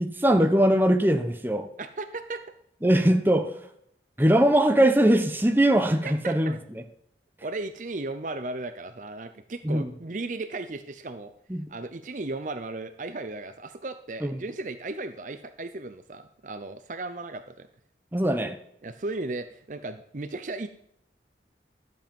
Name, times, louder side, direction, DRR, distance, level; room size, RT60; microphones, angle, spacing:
voice 1, 0.0-1.7 2.8-3.5 4.2-6.5 9.6-9.9 11.5-11.7 14.2-14.3 18.1-18.6, right 1 dB, 10° right, 6 dB, 0.9 m, -21 dB
voice 2, 1.8-2.4 6.0-6.6 7.4-11.3 11.7-17.7 18.8-20.7, right 2 dB, 45° right, 10 dB, 0.6 m, -35 dB
12.0 x 7.8 x 5.2 m, 0.72 s
head